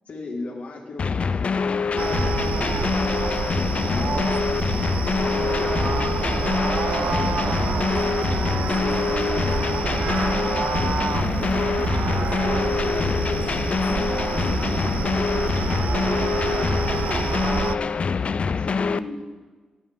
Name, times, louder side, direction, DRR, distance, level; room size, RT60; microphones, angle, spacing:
voice 1, 0.1-4.7 5.2-6.5 7.0-7.4 12.7-13.7 14.8-18.0 18.4-19.3, left 2 dB, 70° left, 2 dB, 1.8 m, -39 dB
sound 1, 1.0-19.0, left 5 dB, 50° left, 0.3 m, -24 dB
sound 2, 2.0-3.4 5.0-5.8 7.6-7.7 8.1-8.9 9.2-9.6 12.7-13.8 14.0-14.1 16.0-17.0, equal, 15° right, 1.7 m, -53 dB
sound 3, 2.0-17.7, right 6 dB, 70° right, 0.4 m, -27 dB
voice 2, 6.8-14.9, equal, 5° left, -8 dB, 4.0 m, -46 dB
16.0 x 10.5 x 3.6 m, 1.4 s
cardioid pair, 85°, 3 cm